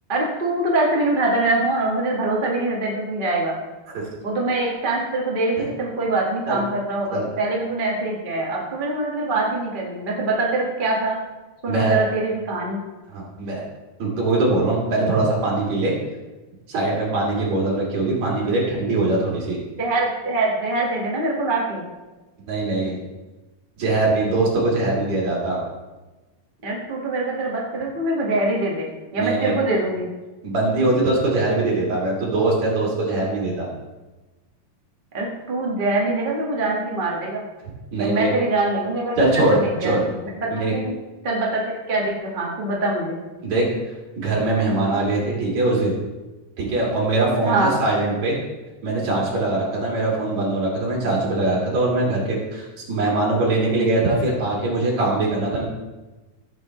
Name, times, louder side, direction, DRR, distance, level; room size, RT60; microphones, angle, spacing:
voice 1, 0.1-3.5 4.2-11.2 11.6-12.8 19.8-21.8 26.6-30.1 35.1-37.4 38.0-40.9 41.2-43.2 47.4-47.7, right 2 dB, 30° right, -3 dB, 0.9 m, -24 dB
voice 2, 11.7-12.0 13.1-13.7 14.0-15.9 16.7-19.6 22.5-23.0 23.8-25.6 29.2-29.6 30.4-33.7 37.9-38.3 39.2-40.0 40.5-40.7 43.4-43.7 44.2-45.9 46.6-48.4 48.8-55.6, right 2 dB, 55° right, -4 dB, 4.0 m, -22 dB
15.5 x 7.7 x 3.2 m, 1.2 s
omnidirectional pair, 3.9 m